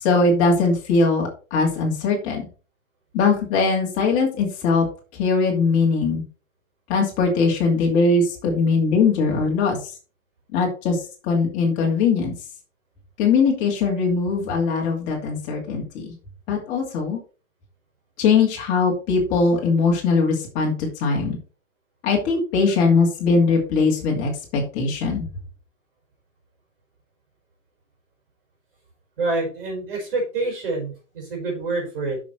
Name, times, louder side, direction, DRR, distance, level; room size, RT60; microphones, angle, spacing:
voice 1, 0.0-2.4 3.1-4.8 5.1-6.2 6.9-9.8 10.5-12.3 13.2-16.1 16.5-17.2 18.2-21.4 22.0-25.3, left 4 dB, 20° left, 0 dB, 2.5 m, -20 dB
voice 2, 29.2-32.2, right 2 dB, 45° right, 1 dB, 5.5 m, -27 dB
9.0 x 6.6 x 4.5 m, 0.36 s
hypercardioid pair, 175°, 38 cm